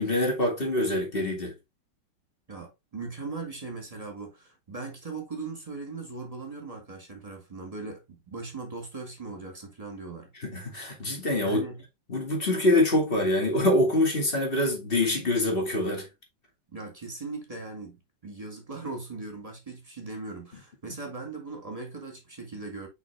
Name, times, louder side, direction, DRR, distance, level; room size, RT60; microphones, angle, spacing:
voice 1, 0.0-1.5 10.4-11.7 12.1-16.1, left 1 dB, 30° left, 2.5 m, -25 dB
voice 2, 2.5-10.3 11.4-11.8 16.7-18.0 18.2-22.9, right 3 dB, 20° right, 2.1 m, -39 dB
5.9 x 5.4 x 3.4 m
omnidirectional pair, 2.0 m